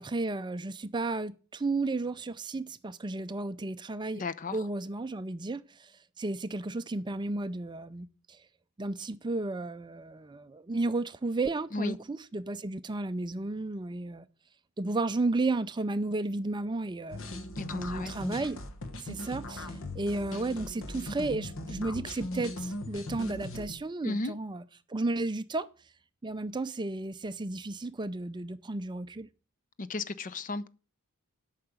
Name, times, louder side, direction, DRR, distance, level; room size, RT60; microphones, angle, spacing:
voice 1, 0.0-4.2 4.5-8.4 8.8-14.3 14.8-17.2 17.7-18.6 19.0-24.6 24.9-25.7 26.2-29.3, right 2 dB, 20° right, 0.4 m, -33 dB
voice 2, 4.2-4.6 11.7-12.0 17.6-18.2 24.0-24.3 29.8-30.7, left 2 dB, 35° left, 0.5 m, -34 dB
sound 1, 17.1-23.8, left 1 dB, 60° left, 1.3 m, -39 dB
8.9 x 5.7 x 7.9 m
head